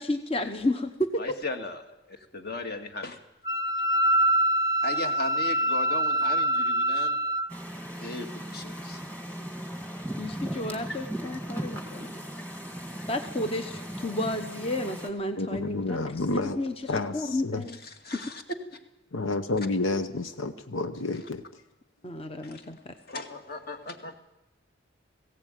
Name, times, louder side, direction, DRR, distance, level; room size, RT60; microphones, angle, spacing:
voice 1, 0.0-1.2 10.2-12.1 13.1-16.0 16.3-17.8 18.1-18.2 22.0-22.9, left 1 dB, 30° left, 7 dB, 1.0 m, -32 dB
voice 2, 1.2-1.8 2.3-3.2 4.8-7.2 8.0-9.0 10.9-11.0 18.1-18.4 22.5-22.6 23.1-24.1, left 2 dB, 50° left, 6 dB, 2.1 m, -36 dB
Wind instrument woodwind instrument, 3.4-7.5, right 1 dB, 20° right, 0.7 m, -25 dB
sound 1, 7.5-15.1, right 1 dB, 10° left, 1.9 m, -37 dB
voice 3, 15.4-16.6 16.9-17.7 19.1-21.4, left 2 dB, 80° left, 9 dB, 0.9 m, -30 dB
19.0 x 16.5 x 9.2 m, 0.90 s
head